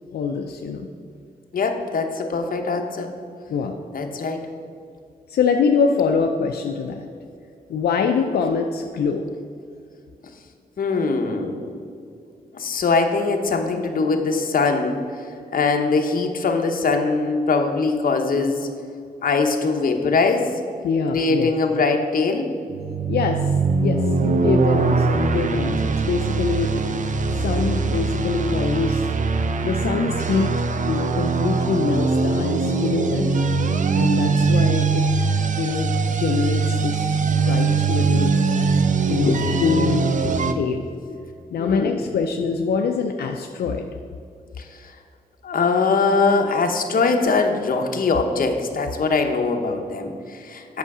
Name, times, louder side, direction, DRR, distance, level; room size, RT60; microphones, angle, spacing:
voice 1, 0.1-0.9 3.5-3.8 5.3-7.1 7.7-9.3 20.8-21.5 23.1-26.8 27.3-29.0 29.6-30.5 30.9-33.4 33.9-35.0 35.6-35.9 36.2-38.3 39.1-39.3 39.6-40.1 40.6-40.8 41.5-43.9, left 5 dB, 85° left, 3 dB, 0.5 m, -24 dB
voice 2, 1.5-3.1 3.9-4.5 10.8-11.7 12.5-15.0 15.5-18.7 19.2-20.5 21.1-22.5 39.3-39.4 40.2-40.5 41.6-42.0 44.6-44.9 45.4-50.8, left 4 dB, 60° left, 4 dB, 0.9 m, -22 dB
sound 1, 22.7-40.5, right 4 dB, 50° right, 0.6 m, -21 dB
8.2 x 6.4 x 4.8 m, 2.4 s
cardioid pair, 80°, 16 cm